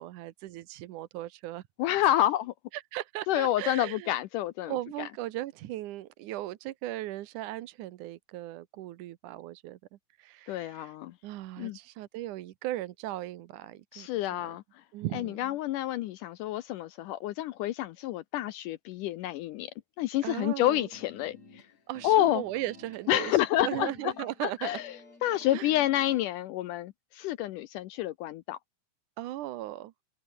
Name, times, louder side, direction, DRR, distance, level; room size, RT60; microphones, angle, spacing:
voice 1, 0.0-1.6 2.7-4.1 4.7-9.8 10.2-10.9 11.2-14.5 14.9-15.6 20.2-20.9 21.9-24.7 25.5-25.7 29.2-29.9, right 15 dB, 70° right, 2.1 m, -37 dB
voice 2, 1.8-2.5 3.3-5.1 10.5-11.1 11.6-11.8 13.9-14.6 15.1-19.7 20.0-21.6 22.0-22.4 23.1-24.9 25.2-28.6, left 14 dB, 75° left, 2.0 m, -29 dB
sound 1, 20.5-26.3, left 3 dB, 45° left, 8.4 m, -53 dB
omnidirectional pair, 4.3 m